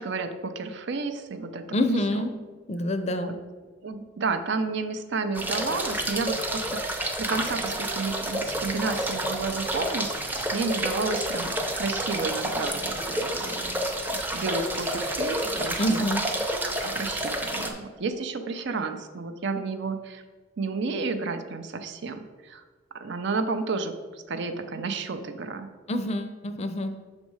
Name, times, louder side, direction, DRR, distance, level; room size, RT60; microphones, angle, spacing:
voice 1, 0.0-1.8 2.1-2.2 3.1-3.4 3.8-13.8 14.1-16.0 16.6-20.2 20.6-22.6 22.9-25.7, right 4 dB, 65° right, 8 dB, 0.6 m, -31 dB
voice 2, 1.7-2.3 2.7-3.3 15.8-16.2 25.9-27.0, left 1 dB, 35° left, 9 dB, 0.5 m, -26 dB
sound 1, 5.3-17.7, right 1 dB, 10° right, 0.6 m, -29 dB
6.3 x 4.1 x 4.8 m, 1.4 s
head